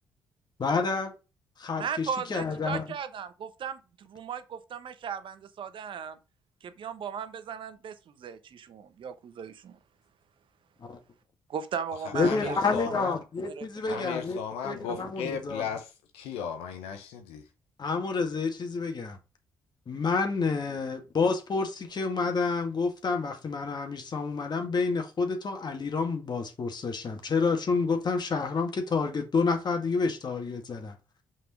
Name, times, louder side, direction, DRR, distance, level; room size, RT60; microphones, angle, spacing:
voice 1, 0.6-1.1 1.6-2.8 10.9-11.0 12.1-14.4 14.6-15.6 17.8-19.2 19.9-31.0, left 4 dB, 45° left, 2.0 m, -29 dB
voice 2, 1.8-6.2 6.6-9.8 11.5-12.9 13.4-14.2, right 7 dB, 55° right, 1.0 m, -37 dB
voice 3, 12.0-13.2 13.9-17.5, left 7 dB, 70° left, 1.0 m, -36 dB
5.8 x 5.4 x 5.0 m
hypercardioid pair, 45°, 10 cm